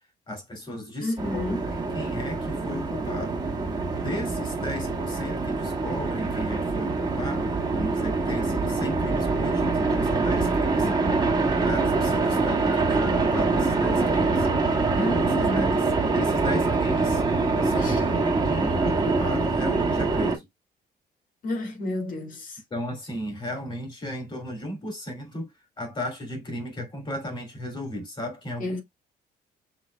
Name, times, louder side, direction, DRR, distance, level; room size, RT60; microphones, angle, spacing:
voice 1, 0.3-3.3 4.0-11.0 11.6-14.5 15.0-15.8 16.1-17.2 17.6-20.5 22.7-28.8, left 1 dB, 30° left, 2.6 m, -35 dB
voice 2, 1.0-1.6 10.8-11.2 14.3-14.6 14.9-15.8 17.8-18.0 21.4-22.6 28.6-28.8, left 2 dB, 55° left, 1.9 m, -31 dB
sound 1, 1.2-20.4, right 3 dB, 25° right, 1.6 m, -24 dB
5.7 x 3.8 x 2.2 m
cardioid pair, 110°, 16 cm